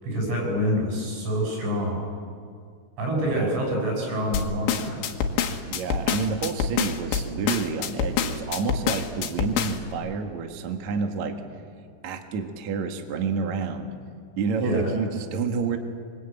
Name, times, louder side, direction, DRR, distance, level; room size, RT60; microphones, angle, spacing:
voice 1, 0.0-2.0 3.0-5.0 14.6-14.9, equal, 80° right, 0 dB, 9.3 m, -26 dB
voice 2, 3.2-3.6 5.7-11.4 12.0-13.9 14.4-15.8, right 5 dB, 55° right, 5 dB, 2.2 m, -29 dB
sound 1, 4.3-9.9, left 7 dB, 85° left, 3.9 m, -26 dB
26.0 x 23.5 x 9.1 m, 2.3 s
omnidirectional pair, 5.3 m